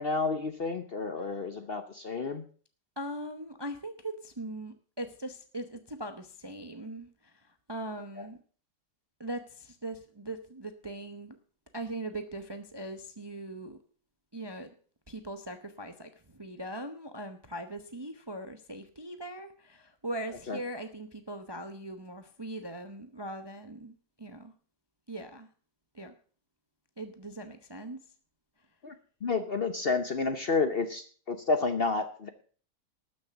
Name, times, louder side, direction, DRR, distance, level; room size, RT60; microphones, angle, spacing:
voice 1, 0.0-2.4 20.5-20.6 28.8-28.9 29.2-32.3, left 4 dB, 45° left, 9 dB, 0.9 m, -30 dB
voice 2, 3.0-8.4 9.2-11.4 11.7-13.8 14.3-14.7 15.1-24.5 25.1-25.5 25.9-26.1 27.0-28.0, right 1 dB, 20° right, 8 dB, 0.6 m, -40 dB
13.0 x 6.6 x 6.9 m, 0.43 s
omnidirectional pair, 1.8 m